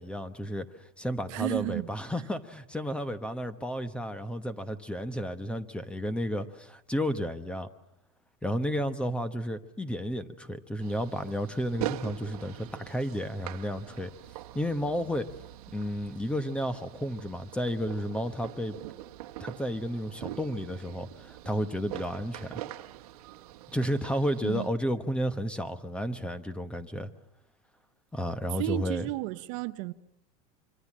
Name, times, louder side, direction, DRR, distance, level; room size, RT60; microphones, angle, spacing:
voice 1, 0.0-7.7 8.4-14.1 14.5-15.3 15.7-18.8 19.4-22.6 23.7-27.1 28.1-29.1, equal, 5° left, 1.0 m, -32 dB
voice 2, 1.3-2.2 24.4-24.7 28.5-29.9, right 19 dB, 55° right, 0.9 m, -33 dB
sound 1, 10.8-24.7, right 15 dB, 80° right, 1.4 m, -43 dB
25.0 x 25.0 x 7.4 m
supercardioid pair, 145°, 19 cm